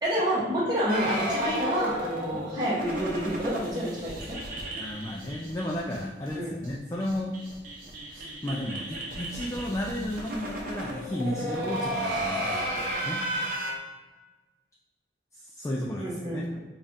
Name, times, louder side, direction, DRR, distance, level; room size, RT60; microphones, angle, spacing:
voice 1, 0.0-4.4 6.3-6.5 16.0-16.6, equal, 20° right, -7 dB, 1.1 m, -28 dB
sound 1, 0.9-6.0 6.3-6.4 6.6-6.7 7.0-13.7, right 1 dB, 50° right, 0.7 m, -33 dB
voice 2, 4.8-7.4 8.1-13.2 15.3-16.5, left 1 dB, 15° left, -3 dB, 0.3 m, -33 dB
5.2 x 2.4 x 2.7 m, 1.3 s
head